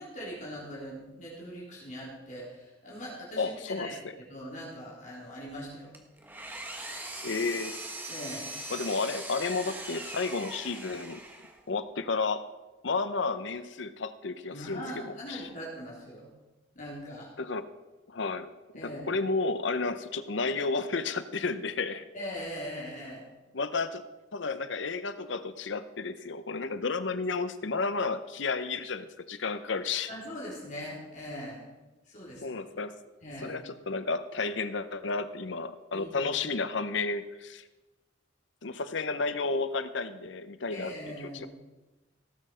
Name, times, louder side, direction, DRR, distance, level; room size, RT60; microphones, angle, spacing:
voice 1, 0.0-4.0 4.3-5.9 8.1-8.5 14.5-16.3 16.7-17.3 18.7-19.0 22.1-23.2 30.1-31.7 32.1-32.6 33.2-33.6 35.9-36.3 40.7-41.5, equal, 40° left, -5 dB, 3.9 m, -41 dB
voice 2, 3.4-4.1 7.2-7.7 8.7-11.2 11.7-12.4 12.8-15.5 17.4-17.7 18.1-18.5 18.8-22.0 23.5-24.0 24.3-30.1 32.4-32.9 33.4-37.6 38.6-41.5, left 4 dB, 75° left, 12 dB, 0.8 m, -32 dB
Engine, 5.9-11.7, right 2 dB, 10° right, 1.4 m, -41 dB
17.0 x 7.8 x 5.1 m, 1.1 s
head